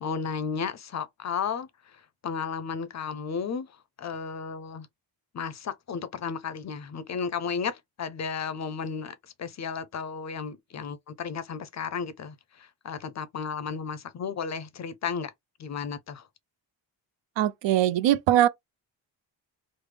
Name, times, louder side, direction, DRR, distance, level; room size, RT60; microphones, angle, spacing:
voice 1, 0.0-3.7 4.0-4.9 5.3-15.3 15.6-16.3, left 6 dB, 40° left, 0.4 m, -34 dB
voice 2, 17.4-18.5, right 12 dB, 85° right, 0.5 m, -21 dB
3.3 x 2.0 x 3.2 m
cardioid pair, 130°, 43 cm